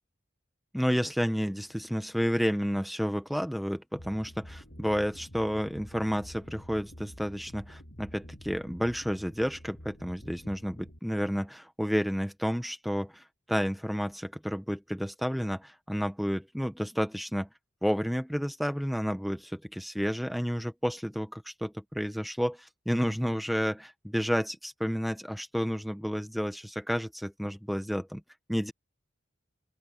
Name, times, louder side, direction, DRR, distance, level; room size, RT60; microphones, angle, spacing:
voice 1, 0.7-17.5 17.8-28.2 28.5-28.7, equal, ahead, 1.1 m, -31 dB
sound 1, 3.9-11.0, equal, 60° left, 7.9 m, -48 dB
open air
head